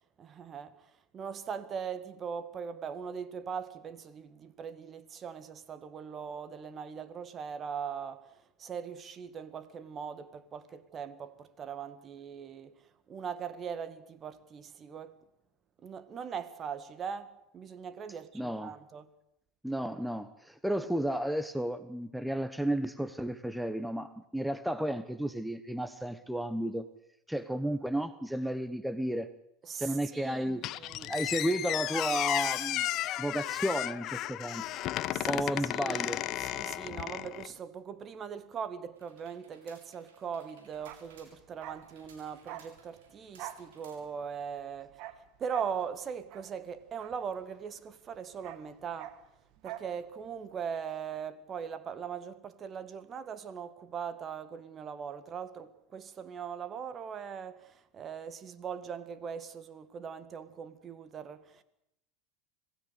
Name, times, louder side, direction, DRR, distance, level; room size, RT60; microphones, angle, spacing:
voice 1, 0.2-15.1 15.8-19.1 29.6-31.1 35.1-36.0 36.4-49.1 49.6-61.6, right 7 dB, 35° right, 1.9 m, -40 dB
voice 2, 18.3-18.7 19.6-26.9 27.3-29.3 29.8-30.6 31.1-32.9 33.2-34.8 35.3-36.2, right 1 dB, 5° right, 1.1 m, -33 dB
Squeak, 30.6-37.5, left 14 dB, 50° left, 0.8 m, -34 dB
sound 1, 38.9-44.4, right 5 dB, 75° right, 7.3 m, -61 dB
Bark, 40.7-47.8 48.1-50.0 50.2-50.4, right 12 dB, 55° right, 1.8 m, -48 dB
26.0 x 16.5 x 8.3 m
hypercardioid pair, 85°, 0 cm